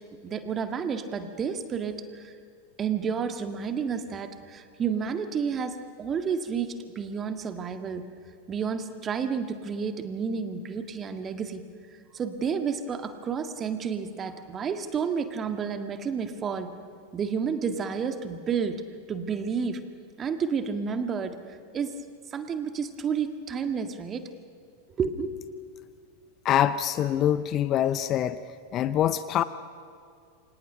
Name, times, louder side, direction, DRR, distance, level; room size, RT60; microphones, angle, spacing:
voice 1, 0.2-2.3 2.8-8.0 8.5-11.6 12.1-16.7 17.1-18.8 19.1-19.8 20.2-21.4 21.7-21.9 22.3-24.2 25.0-25.3, right 6 dB, 25° right, 8 dB, 1.9 m, -30 dB
voice 2, 26.4-28.4 28.7-29.4, left 11 dB, 30° left, 15 dB, 0.7 m, -24 dB
28.5 x 25.5 x 5.8 m, 2.2 s
figure-of-eight pair, 90°, 0 cm